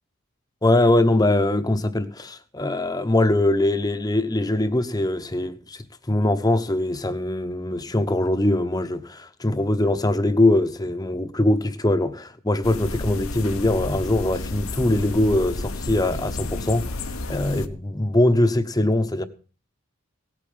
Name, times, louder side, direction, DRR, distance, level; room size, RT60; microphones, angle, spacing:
voice 1, 0.6-19.2, left 1 dB, 15° left, 1.0 m, -22 dB
sound 1, 12.6-17.7, left 2 dB, 75° left, 1.2 m, -31 dB
17.5 x 8.5 x 5.5 m
head